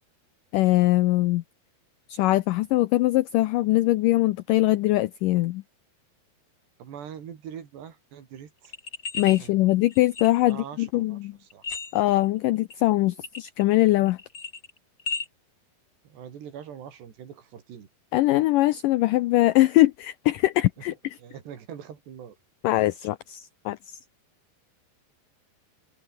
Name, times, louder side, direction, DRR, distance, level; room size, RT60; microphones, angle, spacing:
voice 1, 0.5-1.4 2.1-5.6 9.2-11.3 11.9-14.2 18.1-20.9 22.6-24.0, left 17 dB, 85° left, 1.9 m, -22 dB
voice 2, 6.8-8.8 9.4-9.8 10.4-11.6 16.0-17.9 21.2-22.4, right 8 dB, 90° right, 5.3 m, -43 dB
sound 1, 8.6-9.4 9.9-10.6 11.5-12.2 12.7-12.8 13.2-13.8 14.1-15.3, left 4 dB, 25° left, 2.2 m, -34 dB
omnidirectional pair, 4.7 m